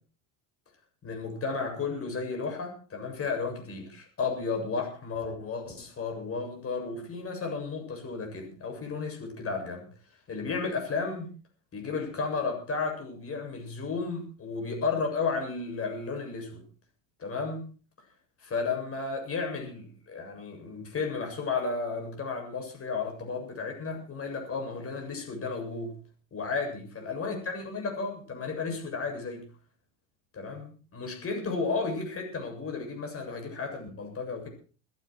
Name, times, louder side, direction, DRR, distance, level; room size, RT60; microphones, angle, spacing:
voice 1, 1.0-9.9 10.3-11.3 11.7-16.6 17.2-17.7 18.4-25.9 26.3-29.5 30.3-34.5, left 4 dB, 30° left, 3 dB, 7.7 m, -33 dB
22.5 x 12.0 x 4.7 m, 0.39 s
supercardioid pair, 105°, 42 cm